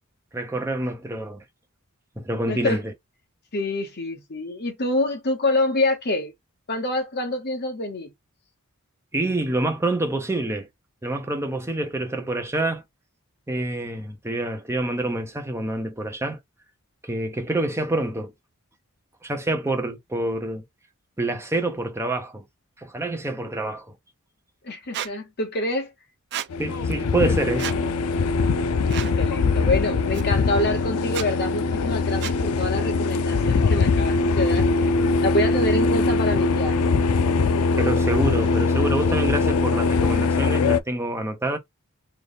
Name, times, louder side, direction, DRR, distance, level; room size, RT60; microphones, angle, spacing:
voice 1, 0.3-1.4 2.2-2.9 9.1-10.7 11.0-12.8 13.5-16.4 17.0-18.3 19.2-20.6 21.2-22.4 22.8-23.9 26.6-27.7 37.8-41.6, right 2 dB, 10° right, 0.8 m, -27 dB
voice 2, 2.5-2.8 3.5-6.3 6.7-8.1 24.6-25.9 28.4-34.9 35.2-36.9, left 2 dB, 45° left, 1.1 m, -26 dB
Squeak, 24.9-25.1 26.3-26.5 27.5-27.8 28.9-29.1 30.1-30.2 31.1-31.3 32.2-32.4, right 11 dB, 50° right, 0.3 m, -31 dB
sound 1, 26.5-40.8, left 4 dB, 75° left, 0.4 m, -22 dB
3.3 x 2.4 x 4.0 m
head